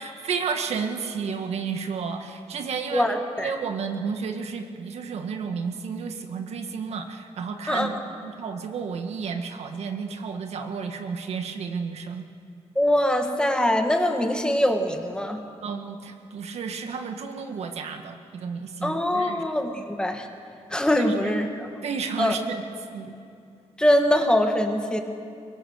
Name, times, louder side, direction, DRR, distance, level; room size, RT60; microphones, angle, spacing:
voice 1, 0.0-3.1 3.4-12.3 15.6-19.4 20.9-21.3 21.8-22.6 22.9-23.2, right 5 dB, 70° right, 5 dB, 1.7 m, -32 dB
voice 2, 2.9-3.5 7.7-7.9 12.7-15.4 18.8-20.3 20.7-21.7 22.2-22.3 23.8-25.0, left 1 dB, 5° left, 5 dB, 1.5 m, -23 dB
23.0 x 22.5 x 6.5 m, 2.4 s
wide cardioid pair, 160°, 11 cm